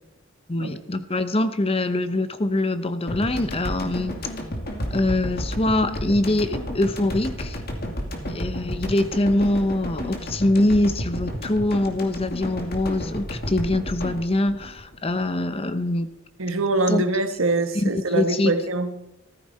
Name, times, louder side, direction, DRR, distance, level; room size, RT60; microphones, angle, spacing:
voice 1, 0.5-4.2 4.9-7.6 8.3-16.1 16.9-17.0 17.7-18.6, left 1 dB, 30° left, 11 dB, 0.8 m, -23 dB
sound 1, 3.1-15.5, equal, 50° left, 2.4 m, -32 dB
voice 2, 16.4-18.9, right 2 dB, 80° right, 7 dB, 1.4 m, -23 dB
15.0 x 13.5 x 4.3 m, 0.83 s
head